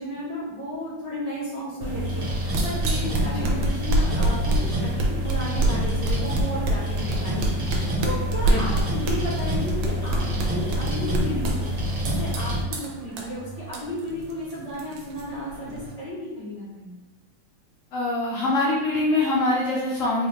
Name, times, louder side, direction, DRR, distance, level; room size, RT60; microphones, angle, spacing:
voice 1, 0.0-10.2 10.5-16.9, equal, 20° left, -9 dB, 1.2 m, -34 dB
sound 1, 1.8-12.6, equal, 60° right, 1.6 m, -27 dB
sound 2, 2.2-15.9, right 1 dB, 90° right, 1.4 m, -28 dB
voice 2, 8.5-8.9 17.9-20.3, left 2 dB, 85° left, -5 dB, 0.7 m, -24 dB
4.0 x 2.4 x 3.1 m, 1.1 s
omnidirectional pair, 2.0 m